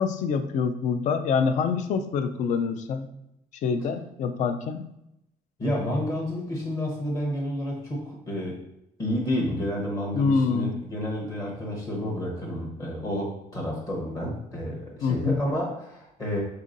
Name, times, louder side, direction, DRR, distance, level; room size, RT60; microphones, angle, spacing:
voice 1, 0.0-3.1 3.6-4.8 10.1-10.7 15.0-15.4, left 5 dB, 50° left, 8 dB, 0.4 m, -25 dB
voice 2, 5.6-8.6 9.0-16.4, equal, 20° left, -3 dB, 0.9 m, -30 dB
5.4 x 3.6 x 2.6 m, 0.83 s
cardioid pair, 170°, 16 cm